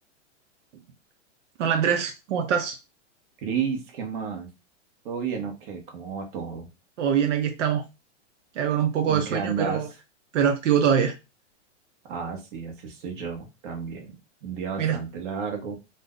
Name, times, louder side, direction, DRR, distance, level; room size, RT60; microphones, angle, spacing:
voice 1, 1.6-2.8 7.0-7.8 8.6-9.9 10.3-11.1 14.8-15.0, right 8 dB, 85° right, 0.6 m, -23 dB
voice 2, 3.4-4.5 5.0-6.7 9.1-9.8 12.1-14.1 14.4-15.7, right 6 dB, 45° right, 0.9 m, -32 dB
2.6 x 2.1 x 3.5 m
supercardioid pair, 170°, 36 cm